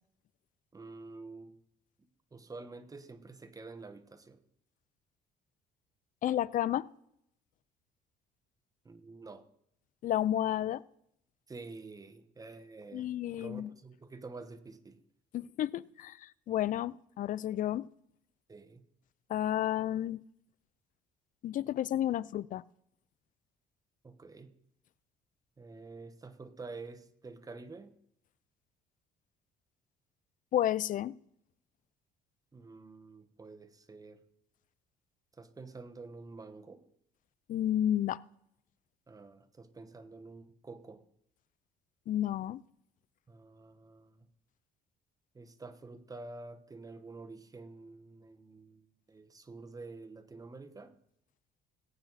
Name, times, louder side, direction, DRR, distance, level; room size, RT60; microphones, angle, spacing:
voice 1, 0.7-1.5 2.3-4.4 8.8-9.4 11.5-13.1 13.4-15.0 18.5-18.8 24.0-24.5 25.6-28.0 32.5-34.2 35.3-36.8 39.1-41.0 43.3-44.3 45.3-51.0, right 3 dB, 20° right, 1.2 m, -48 dB
voice 2, 6.2-6.9 10.0-10.8 12.9-13.7 15.3-17.9 19.3-20.2 21.4-22.6 30.5-31.2 37.5-38.2 42.1-42.6, left 12 dB, 50° left, 0.5 m, -31 dB
19.5 x 9.0 x 4.1 m
cardioid pair, 110°, 17 cm